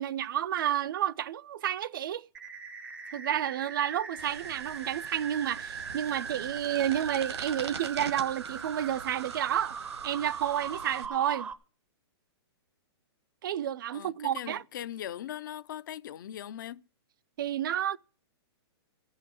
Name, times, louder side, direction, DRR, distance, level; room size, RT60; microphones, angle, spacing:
voice 1, 0.0-2.3 3.1-9.8 10.0-11.5 13.4-14.6 17.4-18.0, right 10 dB, 50° right, 0.5 m, -30 dB
sound 1, 2.3-11.5, right 6 dB, 10° right, 0.6 m, -40 dB
sound 2, 4.2-11.1, right 6 dB, 85° right, 1.9 m, -45 dB
voice 2, 13.9-16.8, left 11 dB, 50° left, 0.5 m, -40 dB
15.0 x 5.7 x 9.2 m
hypercardioid pair, 165°, 14 cm